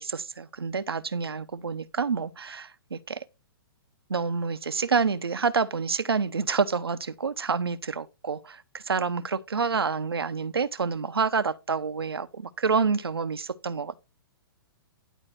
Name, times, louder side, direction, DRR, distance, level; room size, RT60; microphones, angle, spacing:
voice 1, 0.0-3.2 4.1-14.0, right 5 dB, 85° right, 0.9 m, -28 dB
11.5 x 4.1 x 5.8 m
hypercardioid pair, 120°, 12 cm